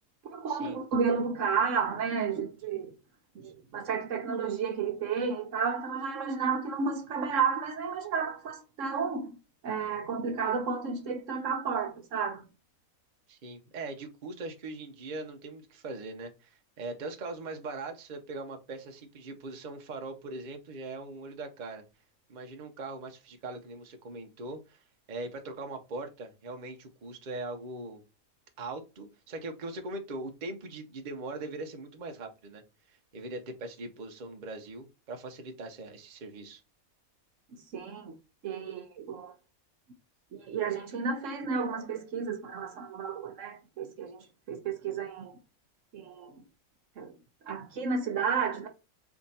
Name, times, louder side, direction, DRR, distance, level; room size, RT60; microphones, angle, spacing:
voice 1, 0.2-3.0 3.3-9.4 9.6-12.4 37.5-38.1 38.4-39.3 40.3-45.4 45.9-46.4 47.0-47.1 47.4-48.7, right 5 dB, 65° right, 1.1 m, -32 dB
voice 2, 13.3-21.8 22.3-28.0 28.6-32.6 32.9-36.6, right 2 dB, 40° right, 0.8 m, -41 dB
3.6 x 3.5 x 4.1 m
omnidirectional pair, 1.5 m